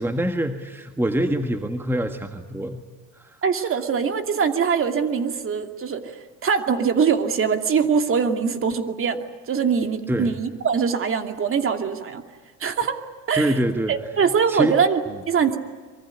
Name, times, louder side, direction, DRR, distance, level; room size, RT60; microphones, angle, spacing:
voice 1, 0.0-2.8 3.2-3.4 10.1-10.3 13.3-13.9 14.5-14.8, right 1 dB, 5° right, 6 dB, 1.7 m, -25 dB
voice 2, 3.4-6.1 6.4-12.2 12.6-13.0 13.3-13.5 13.9-15.6, right 6 dB, 35° right, 6 dB, 2.7 m, -22 dB
24.0 x 23.0 x 9.8 m, 1.5 s
supercardioid pair, 105°, 37 cm